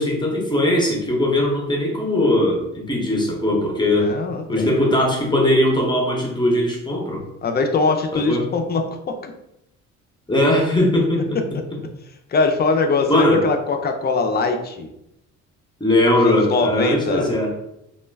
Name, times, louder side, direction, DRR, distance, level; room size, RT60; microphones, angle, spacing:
voice 1, 0.0-4.1 4.5-7.2 8.1-8.4 10.3-11.4 13.1-13.4 15.8-17.5, left 1 dB, 15° left, -1 dB, 0.8 m, -19 dB
voice 2, 4.0-4.7 7.4-9.3 12.3-14.9 16.2-17.3, left 3 dB, 35° left, 5 dB, 0.4 m, -22 dB
2.3 x 2.1 x 3.3 m, 0.84 s
cardioid pair, 90°, 30 cm